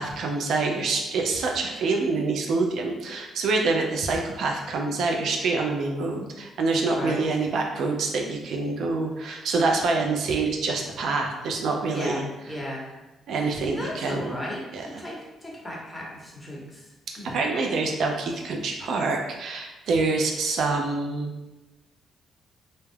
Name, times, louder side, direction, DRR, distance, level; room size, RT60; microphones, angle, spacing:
voice 1, 0.0-12.2 13.3-14.3 14.7-15.0 17.2-21.3, right 3 dB, 70° right, 2 dB, 0.3 m, -26 dB
voice 2, 6.9-7.2 11.9-12.8 13.7-16.9 17.2-17.4, equal, 15° left, -4 dB, 0.8 m, -35 dB
2.3 x 2.0 x 3.1 m, 1.1 s
cardioid pair, 90°, 0 cm